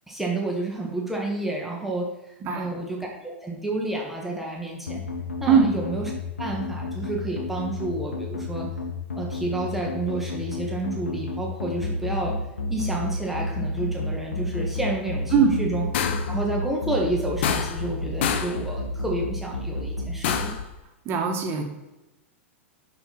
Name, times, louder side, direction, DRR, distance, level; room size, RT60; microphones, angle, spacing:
voice 1, 0.1-2.1 2.5-5.0 5.4-6.1 6.4-8.7 9.2-12.4 12.7-15.9 16.3-20.5, right 2 dB, 5° right, -2 dB, 1.6 m, -30 dB
voice 2, 2.4-2.7 5.5-5.7 15.3-15.6 21.0-21.6, right 6 dB, 35° right, 3 dB, 1.6 m, -20 dB
sound 1, 4.9-20.4, left 3 dB, 85° left, 1.4 m, -30 dB
sound 2, 15.9-16.4 17.4-17.9 18.2-18.6 20.2-20.7, left 8 dB, 55° left, 0.7 m, -26 dB
6.7 x 5.9 x 4.2 m, 0.97 s
figure-of-eight pair, 100°, 7 cm